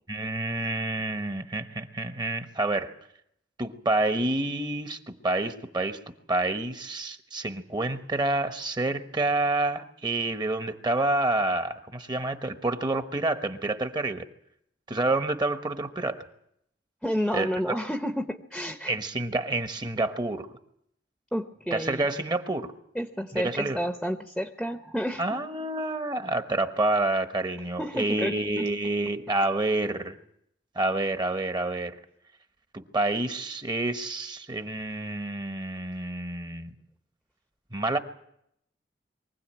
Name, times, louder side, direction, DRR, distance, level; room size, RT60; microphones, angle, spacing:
voice 1, 0.1-2.9 3.6-6.0 6.3-14.2 14.9-16.3 17.3-17.5 18.9-20.5 21.7-22.7 23.3-23.8 25.2-30.2 30.7-32.0 32.7-36.7 37.7-38.0, right 2 dB, 25° right, 8 dB, 1.1 m, -28 dB
voice 2, 17.0-19.0 21.3-22.1 22.9-25.4 27.8-28.7, equal, ahead, 7 dB, 0.8 m, -30 dB
23.5 x 16.5 x 8.8 m, 0.76 s
head